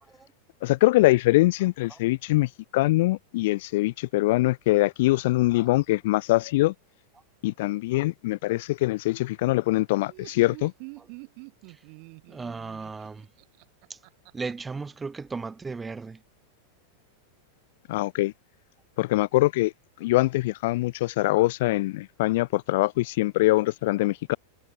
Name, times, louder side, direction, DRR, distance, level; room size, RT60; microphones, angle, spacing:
voice 1, 0.6-6.7 7.4-10.7 17.9-18.3 19.0-19.7 20.0-24.4, left 19 dB, 50° left, 0.3 m, -23 dB
Laughter, 9.9-14.5, right 40 dB or more, 45° right, 2.0 m, -46 dB
voice 2, 12.3-13.3 13.9-14.0 14.3-16.2, right 4 dB, 15° right, 0.7 m, -36 dB
figure-of-eight pair, 90°, 0 cm